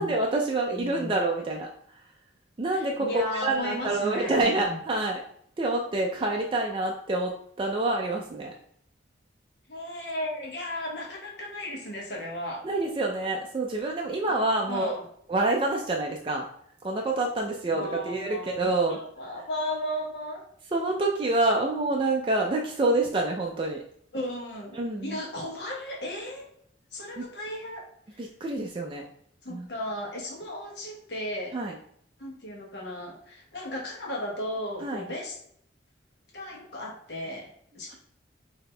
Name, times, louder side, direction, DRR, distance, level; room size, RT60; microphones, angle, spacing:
voice 1, 0.0-1.7 2.6-5.2 5.6-8.5 12.6-14.9 15.3-16.5 16.8-19.0 20.7-23.8 24.7-25.2 27.2-27.3 28.2-29.0 29.5-29.7 31.5-31.8 34.8-35.0, right 2 dB, 30° right, 0 dB, 0.4 m, -27 dB
voice 2, 0.7-1.1 2.7-4.8 9.7-12.7 14.3-14.4 14.7-15.0 17.7-20.5 24.1-26.5 26.9-28.3 29.4-31.6 32.2-35.4 36.3-37.9, left 1 dB, 65° left, -2 dB, 1.2 m, -35 dB
4.0 x 2.8 x 3.2 m, 0.66 s
head